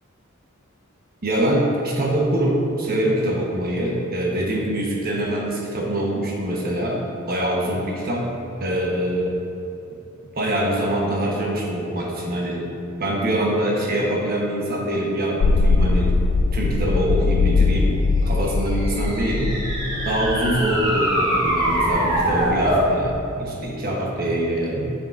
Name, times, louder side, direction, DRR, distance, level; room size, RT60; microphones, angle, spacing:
voice 1, 1.2-8.3 8.6-9.4 10.3-12.7 13.0-16.1 16.5-18.0 18.2-19.6 20.0-24.9, right 1 dB, 45° right, -2 dB, 1.1 m, -24 dB
sound 1, 15.4-20.8, left 3 dB, 90° left, 0.4 m, -21 dB
sound 2, 18.5-22.9, right 1 dB, 20° right, 1.5 m, -23 dB
7.8 x 6.7 x 2.6 m, 2.7 s
head